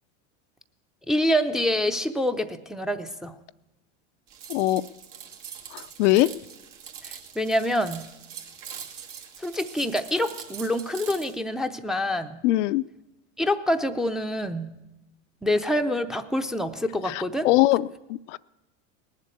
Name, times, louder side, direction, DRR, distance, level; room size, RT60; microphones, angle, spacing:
voice 1, 1.1-3.3 7.0-8.1 9.4-12.4 13.4-14.7 15.4-17.5, left 1 dB, ahead, 5 dB, 0.5 m, -26 dB
sound 1, 4.3-11.4, right 8 dB, 75° right, 2.1 m, -43 dB
voice 2, 4.5-4.8 5.7-6.3 12.4-12.8 17.1-18.4, left 17 dB, 70° left, 14 dB, 0.5 m, -22 dB
18.5 x 7.5 x 8.4 m, 0.96 s
supercardioid pair, 115°, 37 cm